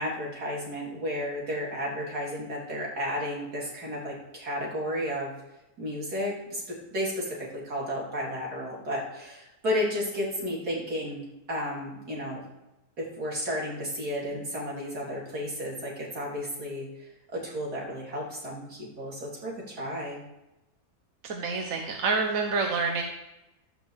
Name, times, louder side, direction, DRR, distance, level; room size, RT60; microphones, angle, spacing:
voice 1, 0.0-5.3 5.8-12.4 13.0-16.9 17.3-20.2, equal, 80° right, -4 dB, 4.0 m, -33 dB
voice 2, 21.2-23.0, right 4 dB, 60° right, 2 dB, 1.5 m, -27 dB
13.0 x 5.8 x 7.4 m, 0.94 s
omnidirectional pair, 1.6 m